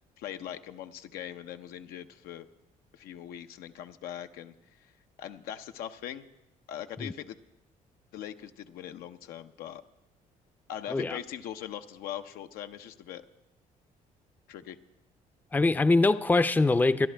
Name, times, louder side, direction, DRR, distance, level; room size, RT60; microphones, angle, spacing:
voice 1, 0.2-2.5 2.9-4.9 5.2-6.3 6.7-7.4 8.1-9.8 10.7-13.2 14.5-14.8, left 10 dB, 85° left, 0.7 m, -41 dB
voice 2, 15.5-17.1, left 3 dB, 10° left, 0.5 m, -23 dB
25.0 x 11.0 x 3.4 m
cardioid pair, 90°, 15 cm